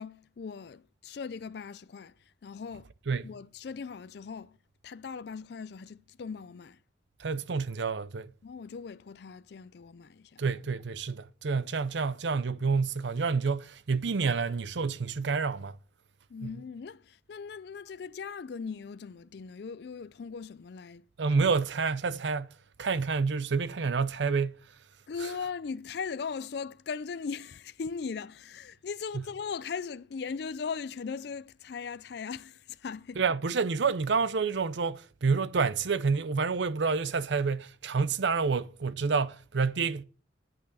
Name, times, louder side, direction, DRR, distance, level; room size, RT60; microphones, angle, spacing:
voice 1, 0.0-2.9 3.2-4.6 4.8-6.8 8.4-10.4 16.3-21.3 25.1-33.2, left 5 dB, 60° left, 0.4 m, -39 dB
voice 2, 7.2-8.3 10.4-15.8 16.4-16.5 21.2-22.5 22.8-24.6 29.1-29.2 33.2-40.0, right 4 dB, 70° right, 0.6 m, -28 dB
11.0 x 6.1 x 6.3 m
head